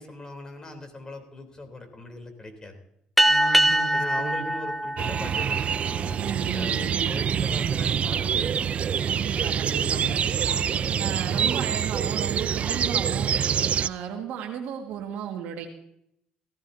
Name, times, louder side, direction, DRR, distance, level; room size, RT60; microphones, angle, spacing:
voice 1, 0.0-2.8 3.9-8.8, left 2 dB, 25° left, 5 dB, 3.3 m, -40 dB
sound 1, 3.2-6.1, right 1 dB, ahead, 0.8 m, -23 dB
voice 2, 3.2-4.5 6.2-7.2 9.1-10.2 11.0-13.4 13.8-15.7, right 8 dB, 80° right, 0 dB, 1.7 m, -35 dB
sound 2, 5.0-13.9, right 8 dB, 50° right, 0.5 m, -26 dB
18.5 x 15.0 x 2.7 m, 0.75 s
cardioid pair, 85°, 3 cm